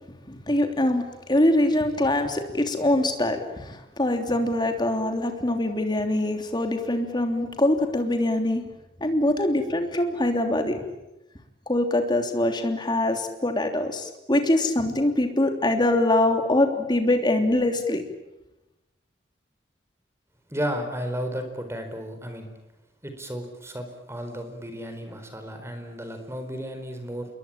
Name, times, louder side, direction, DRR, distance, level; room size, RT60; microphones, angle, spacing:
voice 1, 0.3-1.0 1.3-8.6 9.0-10.8 11.7-18.0, left 1 dB, 25° left, 5 dB, 3.2 m, -23 dB
voice 2, 20.5-22.5 23.0-27.3, equal, 15° right, 6 dB, 4.5 m, -33 dB
28.0 x 22.0 x 9.0 m, 0.97 s
head